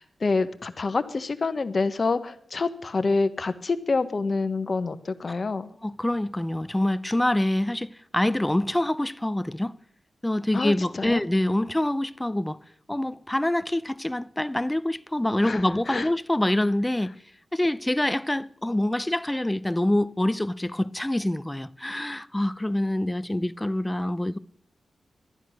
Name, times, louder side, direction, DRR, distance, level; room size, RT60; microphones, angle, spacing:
voice 1, 0.0-5.7 10.5-11.2 15.4-15.6 15.9-16.1, left 3 dB, 50° left, 1.0 m, -27 dB
voice 2, 5.8-9.7 10.2-12.6 12.9-17.1 17.5-24.4, left 1 dB, 10° left, 0.5 m, -26 dB
12.5 x 10.0 x 6.2 m
cardioid pair, 60°, 0 cm